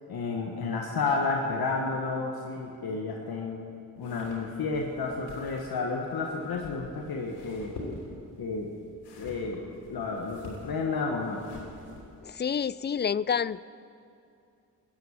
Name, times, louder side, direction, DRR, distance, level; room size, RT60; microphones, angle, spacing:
voice 1, 0.1-3.6 4.0-7.7 8.4-8.7 9.2-9.6 9.9-11.4, left 4 dB, 70° left, 1 dB, 1.5 m, -31 dB
sound 1, 4.0-12.2, left 3 dB, 85° left, 3.2 m, -47 dB
voice 2, 12.2-13.6, left 7 dB, 30° left, 19 dB, 0.4 m, -28 dB
14.5 x 10.5 x 8.8 m, 2.5 s
supercardioid pair, 45°, 38 cm